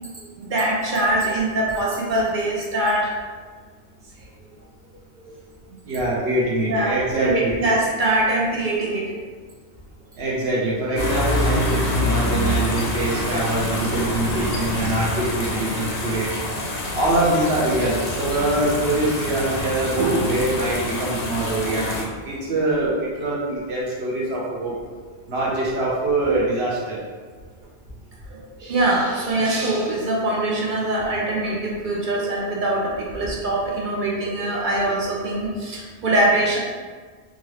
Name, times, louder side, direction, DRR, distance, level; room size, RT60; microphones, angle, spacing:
voice 1, 0.4-3.1 6.7-9.1 20.0-20.3 28.6-36.6, right 1 dB, 60° right, -3 dB, 0.6 m, -23 dB
voice 2, 5.7-7.6 10.2-16.3 16.9-24.7 25.3-27.0, right 2 dB, 75° right, -6 dB, 1.1 m, -24 dB
sound 1, 11.0-22.0, left 1 dB, 85° left, 1.0 m, -26 dB
3.9 x 2.5 x 3.1 m, 1.5 s
omnidirectional pair, 1.1 m